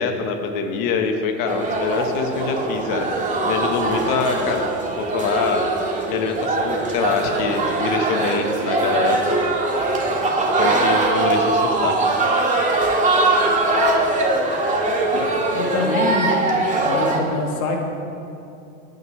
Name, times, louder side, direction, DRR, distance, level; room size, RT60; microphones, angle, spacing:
voice 1, 0.0-3.1 3.4-4.7 5.0-5.6 6.1-9.2 10.6-12.0, left 5 dB, 55° left, 4 dB, 1.4 m, -24 dB
sound 1, 1.5-17.2, right 2 dB, 20° right, 2.0 m, -21 dB
voice 2, 15.1-16.5 16.8-17.8, left 3 dB, 90° left, 2 dB, 1.7 m, -25 dB
21.0 x 9.3 x 3.3 m, 2.6 s
supercardioid pair, 105°, 41 cm